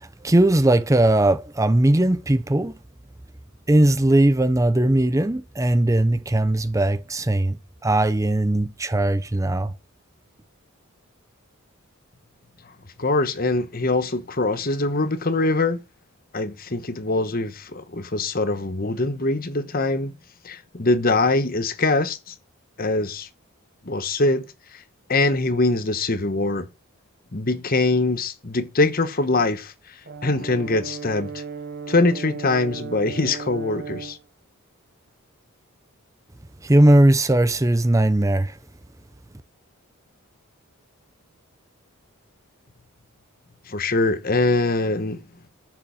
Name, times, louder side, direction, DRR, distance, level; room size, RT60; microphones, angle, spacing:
voice 1, 0.0-2.8 3.7-9.7 36.6-38.6, right 1 dB, 15° right, 0.6 m, -19 dB
voice 2, 13.0-15.8 16.3-20.1 20.4-22.3 22.8-23.3 23.8-24.5 25.1-26.7 27.3-29.7 30.2-31.4 31.9-34.2 43.7-45.2, left 2 dB, 40° left, 1.1 m, -23 dB
Brass instrument, 30.0-34.2, right 5 dB, 45° right, 1.1 m, -36 dB
11.0 x 8.1 x 6.4 m
head